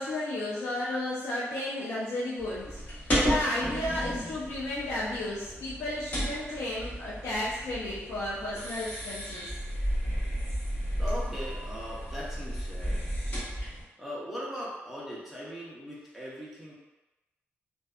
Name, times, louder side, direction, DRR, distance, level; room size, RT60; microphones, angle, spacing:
voice 1, 0.0-9.5, left 1 dB, 90° left, -8 dB, 0.5 m, -33 dB
sound 1, 2.4-13.8, equal, 35° left, 0.9 m, -33 dB
voice 2, 11.0-13.0 14.0-16.7, equal, 5° right, -7 dB, 0.6 m, -39 dB
2.6 x 2.3 x 2.3 m, 1.0 s
wide cardioid pair, 165°, 5 cm